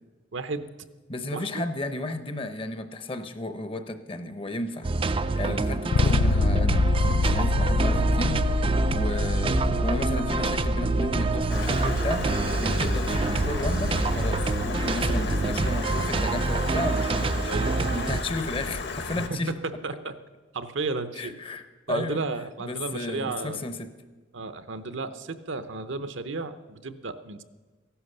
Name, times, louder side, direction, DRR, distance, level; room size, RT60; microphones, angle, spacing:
voice 1, 0.3-0.7 1.3-1.6 5.4-5.6 12.6-12.9 15.1-15.3 17.5-17.9 19.1-20.2 20.5-21.4 21.9-23.6 24.3-27.4, right 3 dB, 65° right, 0.8 m, -33 dB
voice 2, 1.1-17.5 17.9-19.5 21.2-22.2 22.6-23.9, left 2 dB, 25° left, 0.7 m, -33 dB
sound 1, 4.8-18.2, right 3 dB, 25° right, 0.4 m, -26 dB
Bass guitar, 5.9-15.8, left 3 dB, 80° left, 0.5 m, -27 dB
Stream, 11.5-19.3, left 3 dB, 55° left, 1.1 m, -34 dB
15.0 x 11.5 x 6.7 m
head